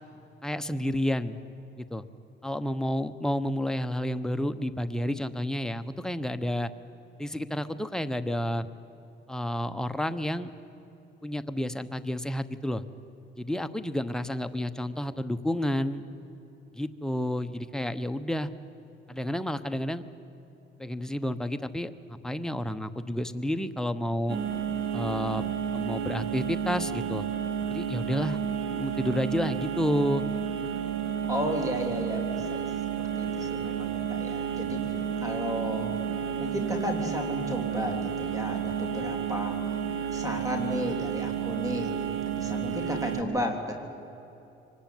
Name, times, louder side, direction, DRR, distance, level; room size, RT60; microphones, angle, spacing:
voice 1, 0.4-1.4 1.8-2.0 2.4-6.7 7.2-8.7 9.3-10.5 11.2-12.8 13.4-16.0 16.7-18.5 19.1-20.0 20.8-24.4 24.9-27.2 27.7-28.4 28.7-30.2, equal, 5° left, 8 dB, 1.0 m, -30 dB
sound 1, 24.3-43.2, right 8 dB, 80° right, 2.3 m, -31 dB
voice 2, 31.3-32.7 33.2-34.8 35.2-35.9 36.4-39.6 40.1-41.9 42.2-43.6, equal, 15° right, 4 dB, 3.4 m, -33 dB
24.0 x 19.5 x 9.4 m, 3.0 s
cardioid pair, 90°, 20 cm